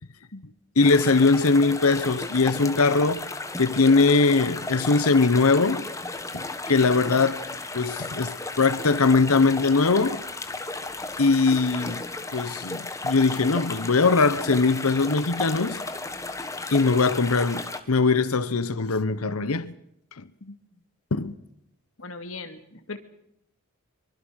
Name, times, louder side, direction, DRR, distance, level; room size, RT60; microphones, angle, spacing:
voice 1, 0.8-3.3 3.6-5.8 6.3-7.4 7.7-10.2 11.2-12.0 12.3-15.8 16.7-19.7 20.2-20.3 21.1-21.3, left 4 dB, 90° left, 1.0 m, -21 dB
sound 1, 0.8-17.8, left 2 dB, 15° left, 1.5 m, -34 dB
voice 2, 22.0-22.6 22.9-23.0, left 3 dB, 70° left, 2.4 m, -37 dB
25.0 x 23.5 x 6.4 m
head